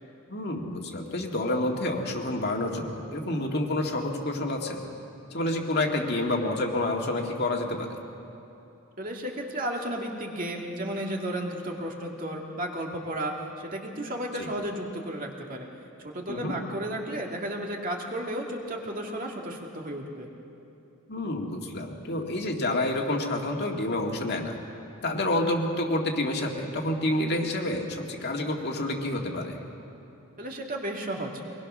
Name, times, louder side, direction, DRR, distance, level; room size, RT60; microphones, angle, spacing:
voice 1, 0.3-4.9 5.3-8.0 14.4-14.5 16.3-16.5 21.1-24.6 25.0-29.6, left 1 dB, 50° left, 1 dB, 1.9 m, -28 dB
voice 2, 9.0-15.7 16.0-20.3 30.4-31.3, right 1 dB, 40° right, 0 dB, 2.1 m, -33 dB
23.5 x 20.0 x 6.2 m, 2.8 s
head